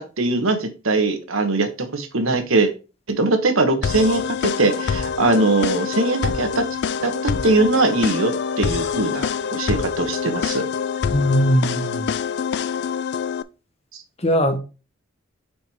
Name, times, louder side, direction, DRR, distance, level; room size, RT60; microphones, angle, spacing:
voice 1, 0.0-2.7 3.1-6.7 7.0-10.6, right 2 dB, 75° right, 1.2 m, -21 dB
sound 1, 3.8-13.4, left 6 dB, 50° left, 0.3 m, -25 dB
voice 2, 11.1-12.1 14.2-14.6, equal, 30° left, 0.9 m, -19 dB
5.1 x 4.5 x 4.6 m
head